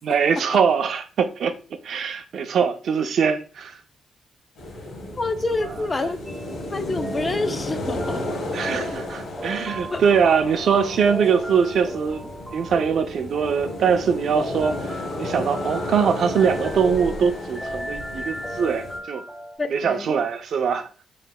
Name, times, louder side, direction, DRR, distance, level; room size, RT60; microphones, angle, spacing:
voice 1, 0.1-1.5 1.8-3.8 8.5-19.2 19.7-20.9, right 6 dB, 60° right, 0.5 m, -22 dB
sound 1, 4.6-19.0, left 1 dB, 75° left, 1.4 m, -33 dB
voice 2, 5.2-6.2 6.7-8.2 8.8-8.9 9.9-10.0 19.6-20.1, left 3 dB, 25° left, 0.5 m, -27 dB
sound 2, 6.3-19.6, right 1 dB, 5° left, 1.0 m, -36 dB
6.0 x 3.2 x 2.2 m
cardioid pair, 135°, 0 cm